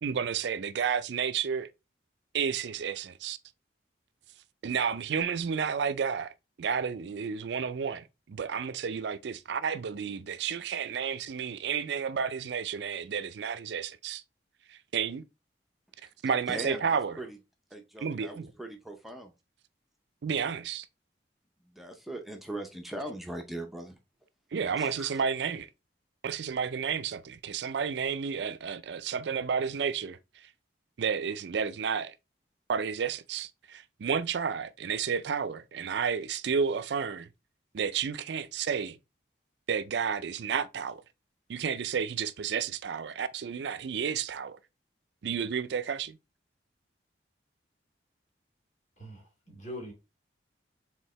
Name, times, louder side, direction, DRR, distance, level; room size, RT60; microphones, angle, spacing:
voice 1, 0.0-1.7 2.3-3.4 4.6-14.2 14.7-15.3 16.2-17.2 18.0-18.5 20.2-20.9 24.5-25.7 26.2-30.5 31.0-32.1 32.7-37.3 37.7-39.0 39.7-41.0 41.5-44.6 45.2-46.2, right 6 dB, 65° right, 0.4 m, -31 dB
voice 2, 16.5-17.4 17.7-19.3 21.7-24.0 24.8-25.2, right 1 dB, ahead, 0.6 m, -40 dB
voice 3, 49.0-49.9, equal, 40° left, 2.4 m, -42 dB
4.5 x 3.6 x 3.1 m
head